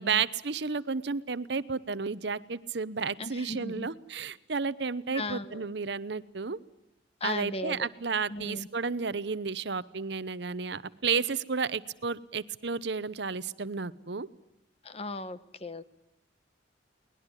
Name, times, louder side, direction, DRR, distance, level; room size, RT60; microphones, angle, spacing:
voice 1, 0.0-6.6 7.2-14.3, right 5 dB, 65° right, 16 dB, 0.9 m, -32 dB
voice 2, 3.2-3.9 5.1-5.7 7.2-7.9 8.3-8.7 14.8-15.8, left 2 dB, 35° left, 13 dB, 1.1 m, -37 dB
23.0 x 20.0 x 9.8 m, 0.88 s
head